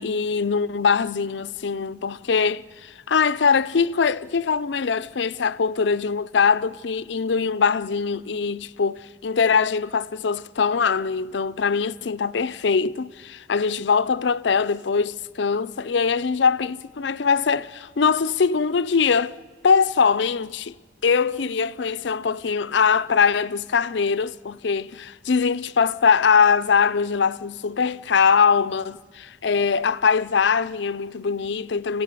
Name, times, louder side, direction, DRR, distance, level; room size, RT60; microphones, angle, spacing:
voice 1, 0.0-19.4 19.6-20.7 21.0-32.0, left 5 dB, 75° left, 0.5 m, -22 dB
27.0 x 15.5 x 6.8 m
head